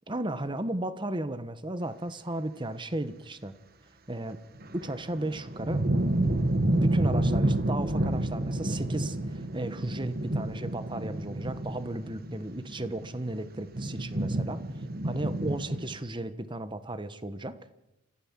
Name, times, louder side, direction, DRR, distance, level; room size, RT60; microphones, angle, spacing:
voice 1, 0.1-3.5 4.1-4.4 4.7-5.8 6.7-14.6 15.0-17.6, right 1 dB, 25° right, 12 dB, 1.2 m, -34 dB
sound 1, 4.6-16.0, right 1 dB, 50° right, 1.5 m, -29 dB
29.5 x 14.5 x 7.5 m, 0.94 s
head